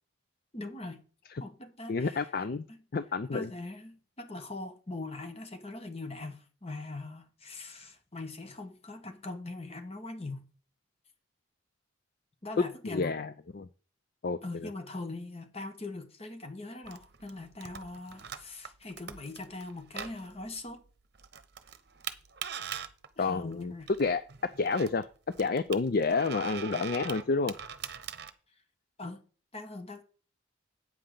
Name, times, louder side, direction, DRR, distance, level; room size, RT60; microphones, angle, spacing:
voice 1, 0.5-1.0 1.4-2.8 3.3-10.4 12.4-13.2 14.4-20.8 23.2-23.9 29.0-29.2 29.5-30.0, left 2 dB, 30° left, 1.3 m, -41 dB
voice 2, 1.9-2.6 2.9-3.5 12.9-13.3 13.5-13.7 14.2-14.7 23.2-23.7 24.0-24.2 24.6-25.0 25.4-27.5, left 4 dB, 50° left, 0.4 m, -29 dB
sound 1, 16.8-28.3, right 8 dB, 55° right, 0.9 m, -43 dB
8.9 x 5.7 x 6.6 m
head